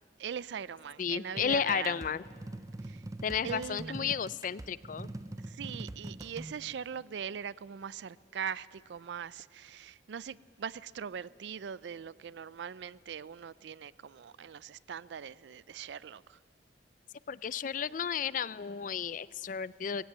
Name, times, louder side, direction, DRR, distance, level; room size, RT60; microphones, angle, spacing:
voice 1, 0.2-2.0 2.8-3.0 3.4-4.1 5.4-16.4, right 7 dB, 75° right, 0.4 m, -41 dB
voice 2, 1.0-2.2 3.2-5.1 17.3-20.1, left 7 dB, 45° left, 0.4 m, -33 dB
sound 1, 1.4-6.5, right 1 dB, 20° right, 0.5 m, -43 dB
18.5 x 16.5 x 8.8 m
head